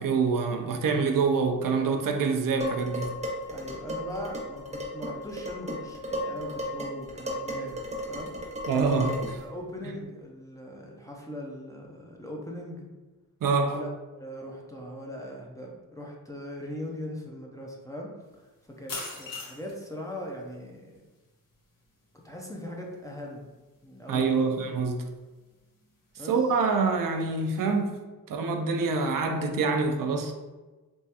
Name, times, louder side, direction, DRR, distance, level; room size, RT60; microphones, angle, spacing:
voice 1, 0.0-3.1 8.7-9.1 13.4-13.8 24.1-25.0 26.3-27.9 28.3-30.3, right 4 dB, 60° right, 4 dB, 0.5 m, -26 dB
Dishes pots and pans, 2.6-9.5, equal, 20° right, 0.8 m, -35 dB
voice 2, 3.5-7.8 8.1-8.3 8.8-12.9 13.6-13.9 14.1-18.1 18.4-21.0 22.2-23.5 23.8-24.6 26.2-26.4, equal, 10° left, -2 dB, 0.5 m, -40 dB
sound 1, 18.2-27.9, left 3 dB, 60° left, 1.1 m, -47 dB
3.5 x 3.0 x 2.8 m, 1.2 s
wide cardioid pair, 125°, 37 cm